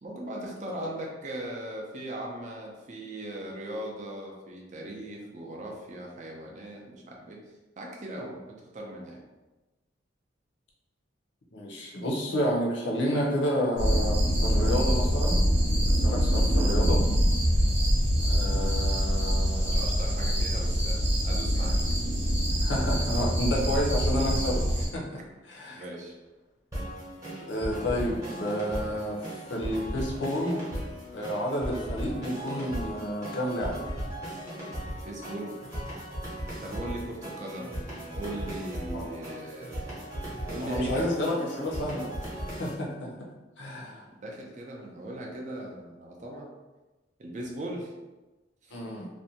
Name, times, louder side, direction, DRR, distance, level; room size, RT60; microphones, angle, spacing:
voice 1, 0.0-7.4 7.8-8.4 8.7-9.2 19.7-21.0 21.2-21.8 25.7-26.1 35.0-35.6 36.6-37.8 38.1-39.8 40.5-41.1 41.4-41.5 44.2-46.5 47.2-47.9 48.6-48.7, right 1 dB, 40° right, -1 dB, 0.4 m, -38 dB
voice 2, 11.5-15.4 15.9-17.0 18.3-19.8 22.6-25.8 27.5-29.2 29.5-30.6 31.1-33.8 38.9-39.1 40.6-42.1 42.6-43.1 43.6-44.0 48.7-49.1, equal, 70° left, -2 dB, 0.6 m, -30 dB
sound 1, 13.8-24.9, equal, 60° right, 0.8 m, -24 dB
sound 2, 26.7-42.7, equal, 15° right, 0.8 m, -37 dB
2.5 x 2.1 x 2.7 m, 1.1 s
head